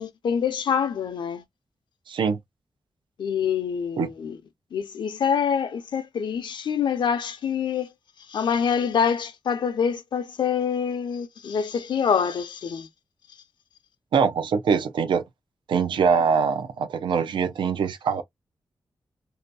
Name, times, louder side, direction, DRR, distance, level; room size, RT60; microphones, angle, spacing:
voice 1, 0.0-1.4 3.2-4.4 4.7-7.9 8.3-12.9, left 7 dB, 80° left, 0.6 m, -26 dB
voice 2, 2.1-2.4 4.0-4.1 14.1-15.2 15.7-18.2, right 6 dB, 90° right, 0.5 m, -23 dB
2.7 x 2.2 x 2.5 m
wide cardioid pair, 110°, 8 cm